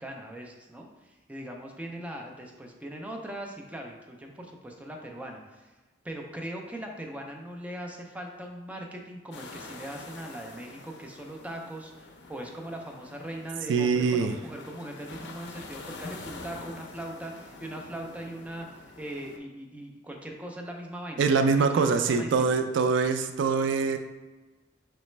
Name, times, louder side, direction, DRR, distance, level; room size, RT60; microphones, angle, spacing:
voice 1, 0.0-5.7 6.0-22.5, right 1 dB, 10° right, 1 dB, 0.4 m, -40 dB
sound 1, 9.3-19.4, left 2 dB, 65° left, 0.5 m, -46 dB
voice 2, 13.7-14.4 21.2-24.0, right 5 dB, 70° right, 8 dB, 0.3 m, -24 dB
4.1 x 3.2 x 3.1 m, 1.2 s
head